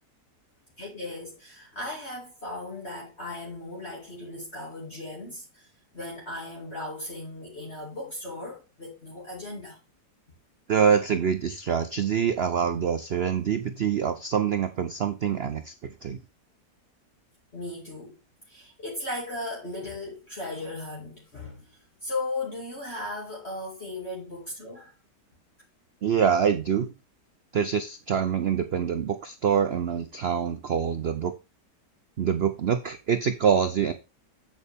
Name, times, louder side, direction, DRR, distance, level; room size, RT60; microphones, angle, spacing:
voice 1, 0.8-9.8 17.5-18.2 18.5-24.9, left 2 dB, 35° left, 2.5 m, -37 dB
voice 2, 10.7-16.2 26.0-26.9 27.5-31.3 32.2-33.9, right 7 dB, 85° right, 0.5 m, -25 dB
8.4 x 7.8 x 3.4 m
omnidirectional pair, 1.9 m